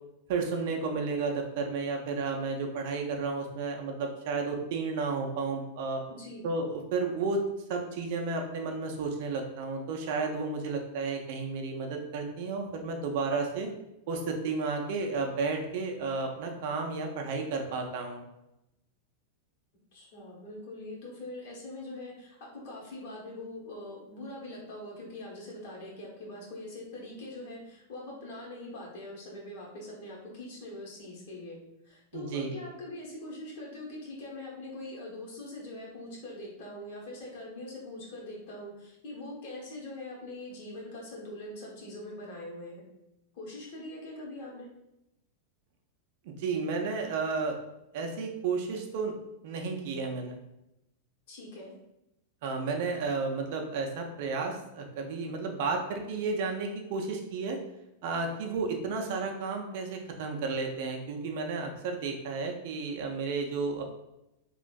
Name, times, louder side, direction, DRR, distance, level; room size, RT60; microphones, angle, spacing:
voice 1, 0.3-6.0 6.4-7.4 7.7-13.7 14.1-18.3 32.1-32.6 46.3-47.6 47.9-49.1 49.4-50.4 52.4-57.6 58.0-63.8, right 4 dB, 50° right, 2 dB, 0.4 m, -32 dB
voice 2, 6.1-6.4 19.9-31.6 31.8-42.8 43.3-44.7 51.3-51.7, left 1 dB, 55° left, -3 dB, 1.0 m, -43 dB
3.0 x 2.5 x 2.3 m, 0.88 s
figure-of-eight pair, 90°, 0 cm